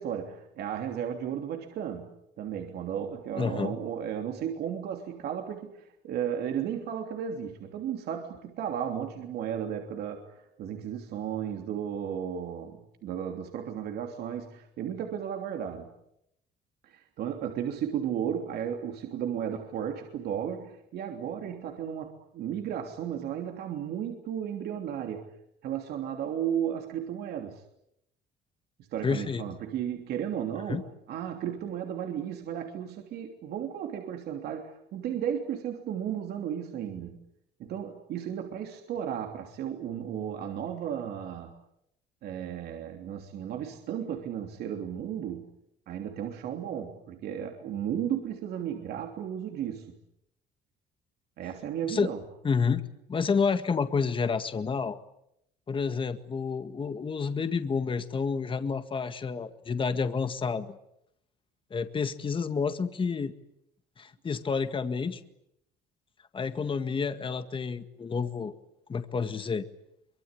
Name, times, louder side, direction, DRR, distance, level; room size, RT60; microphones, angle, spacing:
voice 1, 0.0-2.1 2.4-15.9 16.8-25.3 25.6-27.6 28.9-37.2 37.6-41.5 42.2-45.5 45.9-49.9 51.4-52.2, right 9 dB, 70° right, 3 dB, 3.2 m, -34 dB
voice 2, 3.4-3.8 29.0-29.4 30.7-30.8 51.9-52.1 52.4-55.0 55.7-60.7 61.7-63.3 64.0-65.2 66.3-68.5 68.9-69.7, left 5 dB, 30° left, 9 dB, 1.9 m, -29 dB
24.5 x 24.0 x 9.9 m, 0.80 s
cardioid pair, 110°, 17 cm